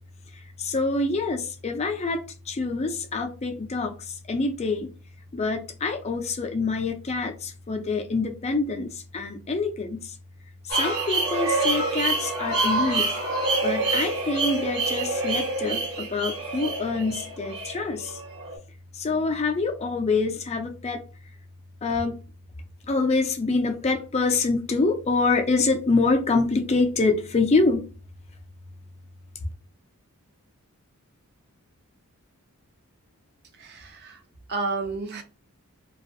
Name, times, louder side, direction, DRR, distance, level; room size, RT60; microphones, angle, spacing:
voice 1, 0.6-2.2 2.5-3.9 4.3-4.9 5.3-10.0 10.7-13.1 13.6-18.1 19.0-21.0 21.8-22.1 22.9-27.8, left 3 dB, 30° left, 0.4 m, -25 dB
sound 1, 10.7-18.6, right 3 dB, 65° right, 1.1 m, -27 dB
voice 2, 33.5-34.2 34.5-35.2, right 3 dB, 45° right, 0.5 m, -31 dB
2.6 x 2.3 x 2.5 m
head